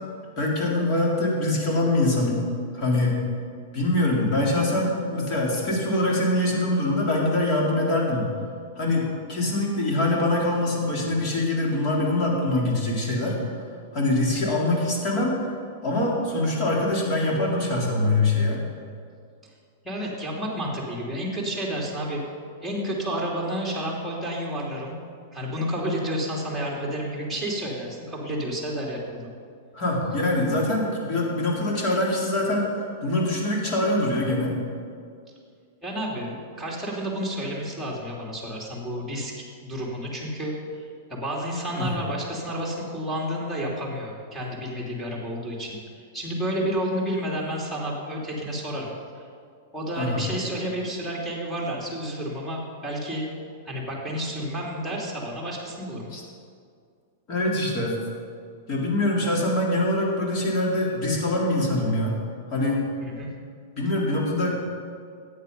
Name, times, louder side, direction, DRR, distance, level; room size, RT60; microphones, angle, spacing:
voice 1, 0.4-2.4 2.7-3.1 3.7-8.3 8.8-13.4 13.9-15.4 15.8-18.6 29.7-32.7 33.0-34.5 41.7-41.9 50.0-50.2 56.1-56.2 57.3-58.0 58.7-62.1 62.5-62.8 63.8-64.6, left 1 dB, 40° left, -2 dB, 3.7 m, -24 dB
voice 2, 19.8-22.2 22.6-25.0 25.3-29.3 35.8-40.8 41.1-49.3 49.7-53.3 53.6-56.1 63.0-63.3, equal, ahead, -4 dB, 3.1 m, -30 dB
13.5 x 8.9 x 5.5 m, 2.2 s
hypercardioid pair, 130°, 0 cm